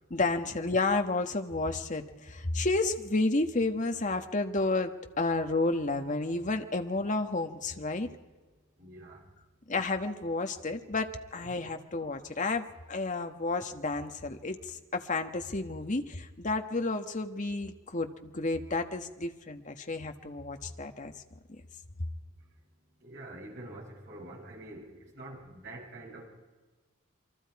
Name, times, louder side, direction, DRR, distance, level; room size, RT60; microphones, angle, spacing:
voice 1, 0.1-8.1 9.7-21.1 21.5-21.6, left 3 dB, 35° left, 5 dB, 1.3 m, -31 dB
voice 2, 8.8-9.2 11.5-11.6 23.0-24.9 25.1-26.3, right 1 dB, 55° right, -3 dB, 7.3 m, -46 dB
28.0 x 24.0 x 4.8 m, 1.3 s
head